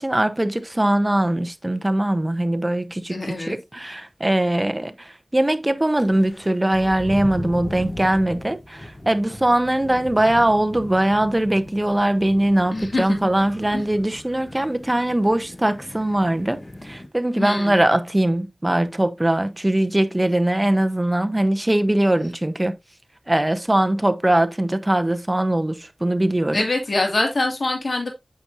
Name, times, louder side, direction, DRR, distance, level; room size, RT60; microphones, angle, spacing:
voice 1, 0.0-22.7 23.3-26.6, right 1 dB, 25° right, 0.9 m, -21 dB
voice 2, 3.1-3.6 12.7-13.3 13.7-13.8 17.4-17.8 26.5-28.1, left 2 dB, 80° left, 2.3 m, -24 dB
sound 1, 6.0-17.1, left 1 dB, 40° left, 1.6 m, -38 dB
8.6 x 6.2 x 2.7 m
wide cardioid pair, 55°, 0 cm